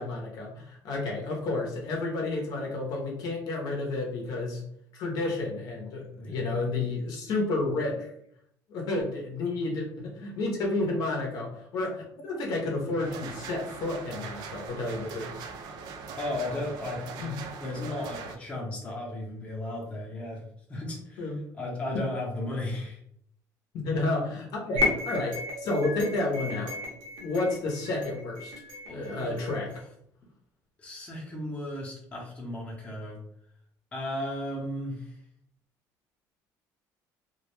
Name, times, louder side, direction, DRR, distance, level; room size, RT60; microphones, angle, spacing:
voice 1, 0.0-4.6 4.9-8.1 8.7-15.3 17.2-17.4 21.2-21.4 23.7-26.8 27.2-28.5 28.9-29.8, left 2 dB, 60° left, -1 dB, 0.6 m, -31 dB
sound 1, 13.0-18.4, right 5 dB, 70° right, 0.3 m, -41 dB
voice 2, 16.2-20.4 20.7-21.3 21.6-23.0 28.9-29.6 30.8-33.2 33.9-35.1, left 1 dB, 15° left, -3 dB, 0.7 m, -35 dB
sound 2, 24.8-29.8, left 3 dB, 85° right, 0.8 m, -34 dB
2.2 x 2.1 x 3.0 m, 0.70 s
cardioid pair, 150°, 7 cm